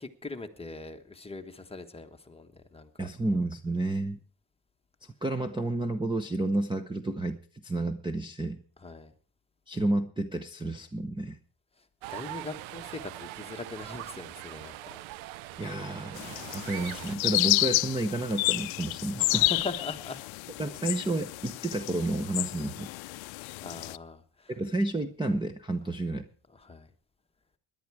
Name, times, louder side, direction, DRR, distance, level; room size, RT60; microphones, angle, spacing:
voice 1, 0.0-3.1 8.8-9.1 11.8-11.9 12.1-15.0 15.5-15.6 19.3-20.2 23.6-24.5 26.5-26.9, left 3 dB, 10° left, 5 dB, 1.2 m, -41 dB
voice 2, 3.0-4.2 5.2-8.6 9.7-11.4 15.6-19.5 20.6-22.9 24.6-26.3, right 2 dB, 10° right, 9 dB, 0.8 m, -31 dB
sound 1, 12.0-17.2, right 16 dB, 75° right, 0.6 m, -42 dB
sound 2, 16.2-24.0, left 21 dB, 70° left, 0.6 m, -30 dB
18.0 x 11.0 x 4.7 m, 0.42 s
cardioid pair, 120°, 49 cm